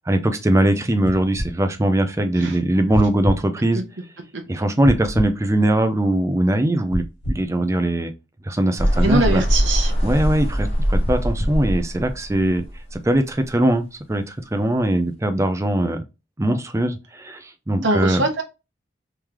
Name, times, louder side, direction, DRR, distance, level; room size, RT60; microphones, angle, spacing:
voice 1, 0.1-3.8 4.5-8.1 8.4-9.4 10.0-12.6 12.9-16.0 16.4-18.2, right 1 dB, 15° right, 0.4 m, -21 dB
sound 1, 1.0-1.5 2.9-3.4 4.8-5.3 6.9-7.5 9.0-9.5 11.0-11.6, equal, 60° left, 0.9 m, -27 dB
sound 2, 8.8-13.2, equal, 35° left, 1.4 m, -22 dB
voice 2, 9.0-9.9 17.8-18.4, right 2 dB, 70° right, 0.8 m, -22 dB
3.7 x 3.1 x 3.0 m
head